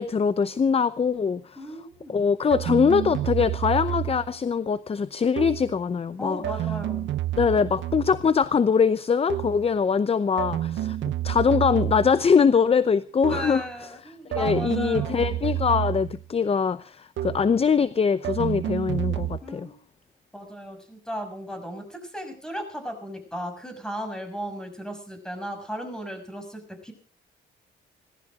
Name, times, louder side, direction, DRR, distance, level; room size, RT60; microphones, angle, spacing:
voice 1, 0.0-1.6 2.1-6.4 7.4-11.0 11.2-13.9 14.3-19.7, left 6 dB, 30° left, 0.7 m, -23 dB
voice 2, 1.6-2.2 6.2-7.1 13.2-15.4 19.4-19.8 20.3-26.9, equal, 5° left, 6.3 m, -36 dB
sound 1, 2.5-4.3 5.4-5.8 6.4-8.3 9.3-9.7 10.4-12.3 13.2-13.7 14.3-16.2 17.2-17.6 18.2-19.4, right 13 dB, 70° right, 0.7 m, -29 dB
18.5 x 15.0 x 5.0 m
cardioid pair, 90°, 20 cm